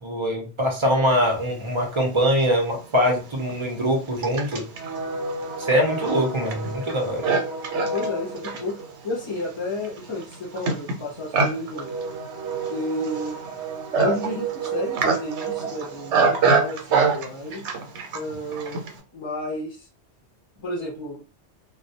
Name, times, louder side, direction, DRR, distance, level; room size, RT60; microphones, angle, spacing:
voice 1, 0.0-4.6 5.6-7.2, equal, 35° right, 2 dB, 0.5 m, -23 dB
Livestock farm animals working animals, 2.2-2.3 3.1-19.0, right 4 dB, 85° right, 0.9 m, -26 dB
voice 2, 7.9-11.9 12.5-13.4 14.0-17.7 18.1-18.8 19.1-19.9 20.6-21.2, left 2 dB, 35° left, -4 dB, 0.5 m, -32 dB
2.2 x 2.1 x 2.7 m, 0.36 s
omnidirectional pair, 1.2 m